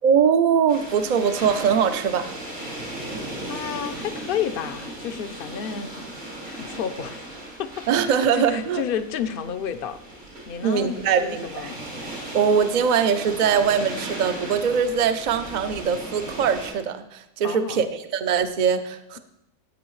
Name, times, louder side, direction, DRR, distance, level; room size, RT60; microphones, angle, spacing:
voice 1, 0.0-2.4 7.9-8.8 10.6-11.7 12.3-19.2, right 7 dB, 50° right, 10 dB, 0.6 m, -22 dB
sound 1, 0.7-16.7, right 1 dB, 85° right, 4.4 m, -37 dB
voice 2, 3.5-6.0 6.4-7.2 7.6-7.7 8.0-10.0 10.5-11.8 17.4-17.9, left 8 dB, 55° left, 10 dB, 0.7 m, -31 dB
15.5 x 8.4 x 3.1 m, 0.82 s
omnidirectional pair, 1.4 m